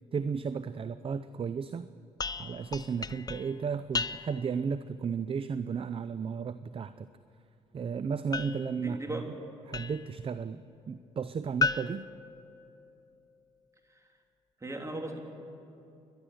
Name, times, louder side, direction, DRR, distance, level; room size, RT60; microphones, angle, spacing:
voice 1, 0.1-1.9 2.4-7.1 7.7-9.2 9.7-12.0, right 6 dB, 40° right, 13 dB, 0.6 m, -34 dB
sound 1, 2.2-4.6 8.3-10.2 11.6-13.1, left 4 dB, 25° left, 0.6 m, -36 dB
voice 2, 8.8-9.3 13.9-14.0 14.6-15.2, right 2 dB, 20° right, 2 dB, 3.3 m, -37 dB
29.5 x 11.5 x 7.8 m, 2.8 s
supercardioid pair, 65°, 14 cm